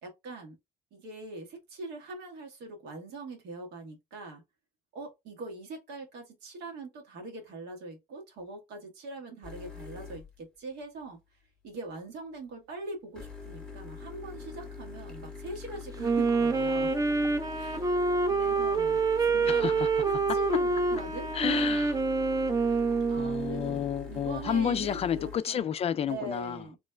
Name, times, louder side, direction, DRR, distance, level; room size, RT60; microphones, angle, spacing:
voice 1, 0.0-0.6 0.9-4.4 4.9-11.2 11.6-16.9 17.5-17.9 18.3-21.3 22.6-25.7 26.0-26.8, right 2 dB, 85° right, 1.3 m, -42 dB
sound 1, 9.4-10.4 13.1-25.4, left 5 dB, 5° left, 0.9 m, -43 dB
Wind instrument woodwind instrument, 16.0-23.7, right 4 dB, 20° right, 0.6 m, -27 dB
voice 2, 19.5-20.0 21.3-22.0 23.2-26.7, left 8 dB, 35° left, 0.3 m, -31 dB
3.1 x 2.1 x 3.3 m
cardioid pair, 110°, 17 cm